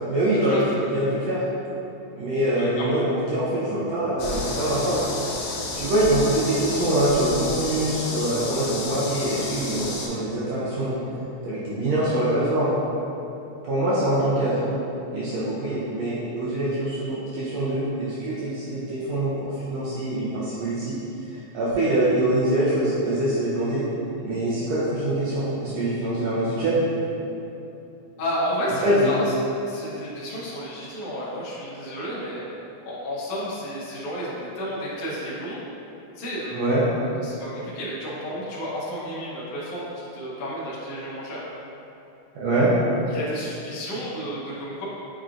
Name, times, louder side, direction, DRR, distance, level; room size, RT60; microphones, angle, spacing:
voice 1, 0.1-0.6 0.9-1.4 2.2-5.0 5.7-10.9 11.4-12.7 13.6-14.6 15.1-21.0 21.3-23.8 24.2-26.8 28.8-29.1 36.5-36.8 42.3-42.7, right 1 dB, 75° right, -9 dB, 1.6 m, -24 dB
voice 2, 2.6-3.0 28.2-29.3 29.7-32.4 32.8-35.6 36.1-41.4 43.1-44.9, equal, 65° left, -9 dB, 1.6 m, -32 dB
sound 1, 4.2-10.1, left 3 dB, 85° left, 2.1 m, -31 dB
7.4 x 2.5 x 2.5 m, 2.9 s
omnidirectional pair, 3.5 m